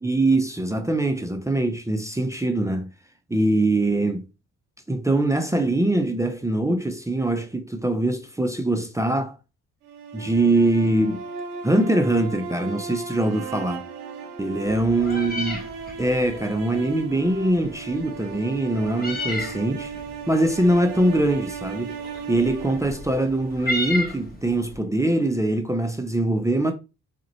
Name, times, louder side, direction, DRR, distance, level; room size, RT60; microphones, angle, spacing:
voice 1, 0.0-2.9 3.3-4.3 4.9-9.4 10.1-11.2 11.6-13.8 14.4-15.7 16.0-19.9 20.3-22.0 22.3-26.7, right 1 dB, 10° right, 0.6 m, -23 dB
sound 1, 9.8-24.0, right 5 dB, 90° right, 0.6 m, -36 dB
Meow, 14.6-24.8, left 1 dB, 25° left, 1.1 m, -35 dB
4.1 x 2.5 x 2.9 m
hypercardioid pair, 50°, 35 cm